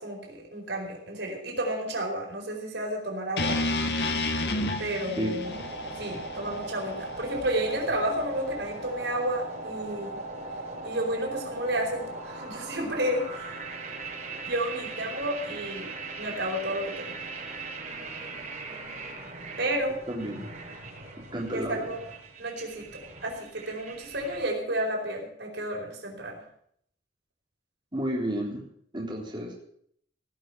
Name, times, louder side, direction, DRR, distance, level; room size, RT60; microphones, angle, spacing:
voice 1, 0.0-3.6 4.8-5.5 6.0-10.2 10.8-13.5 14.4-15.9 16.2-17.1 19.6-20.0 21.5-22.0 22.4-26.4, right 1 dB, 90° right, -1 dB, 4.8 m, -31 dB
sound 1, 3.4-7.5, left 2 dB, 65° left, 1.6 m, -31 dB
sound 2, 5.4-24.4, right 2 dB, 45° right, 6.7 m, -39 dB
voice 2, 20.1-20.5 21.3-21.8 27.9-28.6 28.9-29.5, right 1 dB, 25° right, -3 dB, 3.6 m, -31 dB
18.5 x 6.3 x 8.0 m, 0.66 s
head